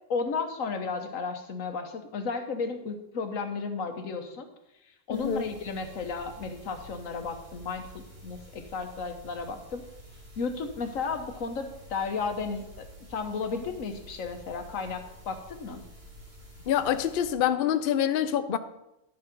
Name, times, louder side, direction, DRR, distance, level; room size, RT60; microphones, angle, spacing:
voice 1, 0.1-4.5 5.1-9.8 10.4-15.8, left 4 dB, 90° left, 7 dB, 1.5 m, -33 dB
voice 2, 5.1-5.4 16.7-18.6, left 9 dB, 55° left, 11 dB, 0.7 m, -26 dB
sound 1, 5.1-17.3, equal, 35° right, 2.6 m, -50 dB
12.0 x 7.0 x 5.2 m, 0.87 s
omnidirectional pair, 1.3 m